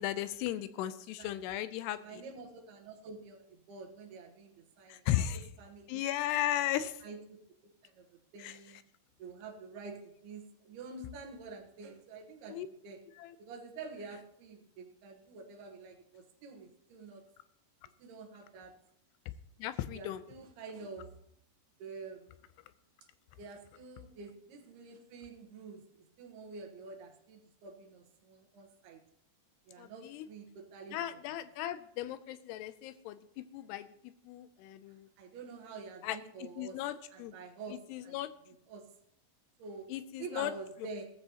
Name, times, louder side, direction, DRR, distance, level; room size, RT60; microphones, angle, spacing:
voice 1, 0.0-2.2 4.9-5.4 5.9-6.9 8.4-8.6 12.5-12.7 13.2-13.3 19.6-20.2 29.8-30.3 30.9-33.9 34.3-35.1 36.0-36.2 36.6-37.3 37.9-38.3 39.9-40.5, left 12 dB, 85° left, 13 dB, 2.6 m, -36 dB
voice 2, 2.0-6.0 6.7-7.4 7.8-8.1 8.3-8.8 9.2-13.0 13.4-17.2 18.0-18.7 19.9-21.1 21.8-22.3 23.4-29.0 29.7-31.4 35.2-36.8 37.1-38.2 38.5-38.8 39.6-39.9 40.2-41.1, right 4 dB, 70° right, 4 dB, 3.1 m, -48 dB
16.5 x 14.0 x 2.9 m, 0.75 s
omnidirectional pair, 4.9 m